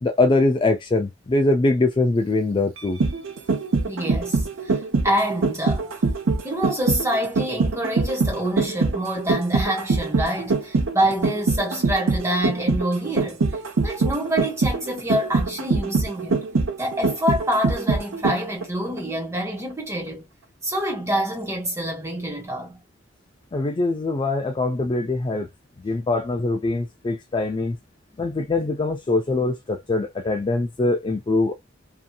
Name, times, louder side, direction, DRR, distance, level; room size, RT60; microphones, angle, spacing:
voice 1, 0.0-3.0 23.5-25.5 25.8-27.8 28.2-31.5, left 2 dB, 25° left, 0.3 m, -22 dB
sound 1, 2.8-18.6 19.0-19.1, right 4 dB, 75° right, 0.6 m, -23 dB
voice 2, 3.9-4.8 5.0-5.9 6.4-13.4 13.8-16.4 16.8-20.3 20.6-22.8, equal, 15° right, 1.3 m, -26 dB
2.8 x 2.6 x 2.2 m
head